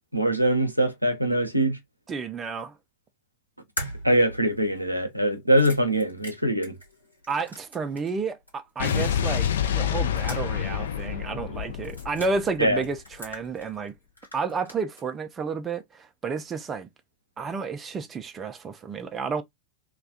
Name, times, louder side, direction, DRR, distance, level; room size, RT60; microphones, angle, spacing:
voice 1, 0.1-1.8 4.0-6.7 12.6-12.8, right 1 dB, 90° right, 0.5 m, -23 dB
voice 2, 2.1-2.8 7.3-13.9 14.3-16.9 17.4-19.4, right 4 dB, 20° right, 0.3 m, -31 dB
sound 1, 3.8-8.2 8.5-8.6 9.7-10.7 11.0-11.1 11.8-12.3 12.8-13.9 14.2-15.1, equal, 85° left, 1.0 m, -40 dB
Explosion, 8.8-13.1, left 9 dB, 60° left, 0.3 m, -28 dB
2.3 x 2.2 x 2.5 m
figure-of-eight pair, 90°, 0 cm